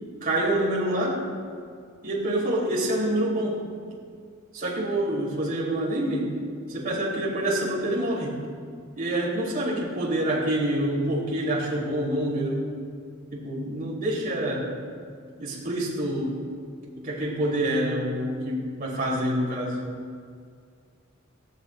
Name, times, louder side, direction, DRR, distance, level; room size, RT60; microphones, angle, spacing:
voice 1, 0.2-1.2 2.0-3.6 4.5-6.4 6.7-8.4 8.9-12.7 13.3-14.7 15.4-16.4 16.9-19.8, right 1 dB, 45° right, -5 dB, 4.2 m, -27 dB
18.0 x 16.0 x 2.7 m, 2.1 s
head